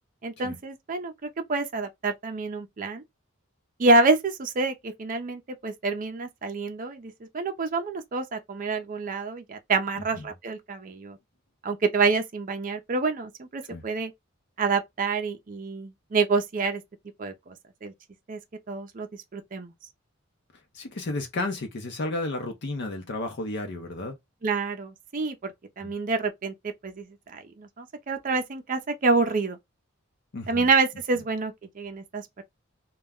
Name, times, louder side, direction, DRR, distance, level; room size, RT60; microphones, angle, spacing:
voice 1, 0.2-3.0 3.8-11.2 11.6-14.1 14.6-16.8 17.2-17.5 17.8-17.9 18.3-18.4 18.7-19.1 19.3-19.7 24.4-29.6 30.5-32.4, right 3 dB, 40° right, 0.5 m, -27 dB
voice 2, 20.7-24.2 25.8-25.9 30.3-30.7, left 2 dB, 55° left, 0.6 m, -32 dB
2.3 x 2.1 x 3.4 m
head